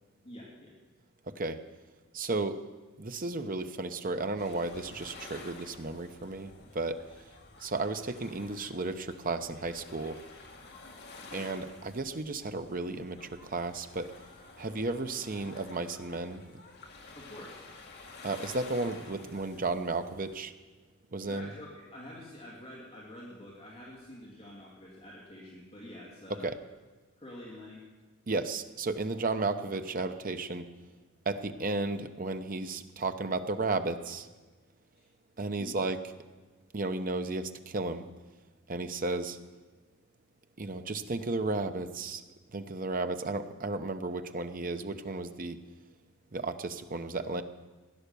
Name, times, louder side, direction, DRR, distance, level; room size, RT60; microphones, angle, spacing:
voice 1, 0.2-0.7 17.1-17.7 21.3-26.5 27.2-27.8 34.9-35.1 35.6-35.7, left 1 dB, 30° left, -5 dB, 2.8 m, -47 dB
voice 2, 1.3-1.6 2.1-2.6 3.0-7.0 7.6-10.2 11.3-14.1 14.6-16.6 18.2-20.5 21.1-21.5 26.4-26.6 28.3-30.7 31.3-34.3 35.4-36.0 36.7-38.0 38.7-39.4 40.6-42.2 42.5-45.6 46.3-47.4, right 3 dB, 40° right, 9 dB, 0.8 m, -33 dB
sound 1, 4.4-20.4, left 3 dB, 50° left, 1.9 m, -51 dB
16.0 x 10.5 x 6.9 m, 1.3 s
head